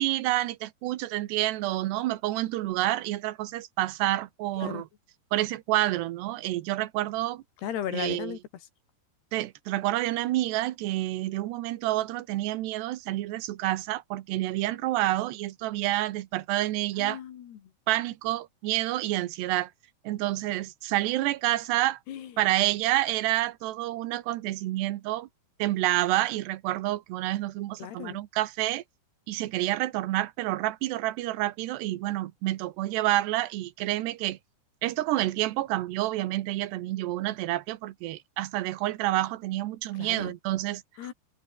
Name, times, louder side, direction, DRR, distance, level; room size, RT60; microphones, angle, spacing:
voice 1, 0.0-4.9 5.3-7.4 7.9-8.4 9.3-17.2 17.9-19.7 20.0-22.0 22.4-25.3 25.6-28.8 29.3-34.4 34.8-40.8, right 16 dB, 80° right, 3.2 m, -28 dB
voice 2, 7.6-8.4 17.0-17.7 22.1-22.3 27.8-28.2 40.0-40.3 41.0-41.1, left 10 dB, 75° left, 4.2 m, -36 dB
omnidirectional pair, 4.8 m